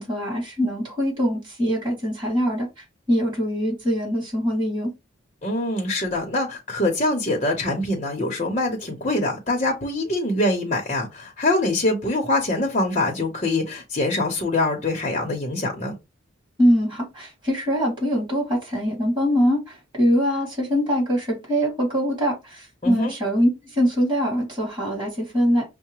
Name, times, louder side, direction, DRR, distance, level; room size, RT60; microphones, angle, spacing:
voice 1, 0.0-2.7 3.1-4.9 16.6-25.6, equal, 25° right, 2.3 m, -23 dB
voice 2, 5.4-15.9 22.8-23.1, left 2 dB, 35° left, 0.8 m, -24 dB
5.5 x 2.1 x 2.9 m
head